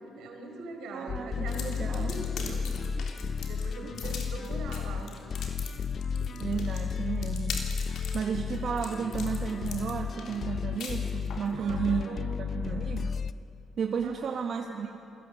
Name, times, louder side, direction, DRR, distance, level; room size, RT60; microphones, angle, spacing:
voice 1, 0.0-2.7 3.5-5.1 11.5-12.4 14.0-14.5, right 2 dB, 85° right, 3 dB, 4.6 m, -41 dB
voice 2, 0.9-2.2 2.9-3.4 3.8-3.9 4.9-5.1 6.4-7.6 8.1-13.2 13.8-15.0, right 6 dB, 60° right, 3 dB, 1.4 m, -33 dB
sound 1, 1.1-13.3, left 6 dB, 50° left, 0.5 m, -33 dB
sound 2, 1.5-11.5, left 6 dB, 75° left, 3.4 m, -42 dB
28.0 x 18.5 x 7.6 m, 3.0 s
cardioid pair, 90°, 0 cm